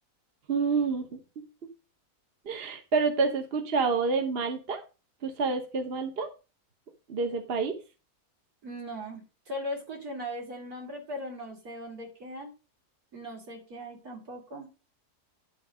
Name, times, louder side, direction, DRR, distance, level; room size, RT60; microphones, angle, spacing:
voice 1, 0.5-1.2 2.4-4.8 5.2-6.3 7.1-7.7, right 4 dB, 45° right, 6 dB, 1.2 m, -28 dB
voice 2, 8.6-12.5 13.1-14.7, equal, 70° right, 0 dB, 3.4 m, -39 dB
11.0 x 3.9 x 6.3 m, 0.32 s
omnidirectional pair, 1.6 m